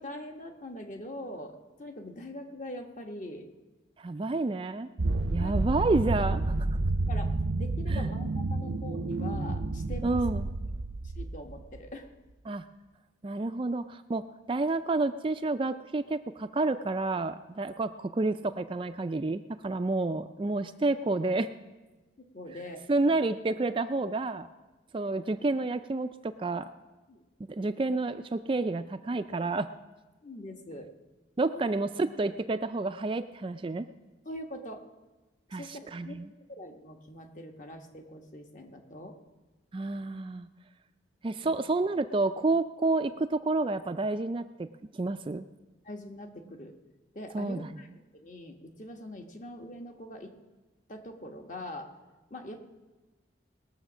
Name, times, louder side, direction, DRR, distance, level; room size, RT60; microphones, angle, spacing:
voice 1, 0.0-3.5 5.4-5.6 7.1-7.3 7.6-10.2 11.0-12.1 22.2-23.2 27.1-27.2 30.2-30.9 31.5-31.6 34.2-34.8 35.5-36.1 36.5-39.2 41.4-41.5 45.8-46.8 47.1-50.3 50.9-51.9 52.3-52.6, left 1 dB, 40° left, 4 dB, 1.2 m, -43 dB
voice 2, 4.0-4.9 5.3-6.5 7.9-8.1 10.0-10.5 12.5-12.6 13.2-14.2 14.5-21.5 22.9-24.5 24.9-26.7 27.6-29.7 31.4-33.9 35.5-36.3 39.7-40.5 41.2-44.7 44.9-45.5 47.3-47.7, right 3 dB, 25° right, 10 dB, 0.3 m, -29 dB
sound 1, 5.0-11.8, right 2 dB, 70° right, 0.6 m, -30 dB
20.0 x 7.2 x 6.1 m, 1.2 s
head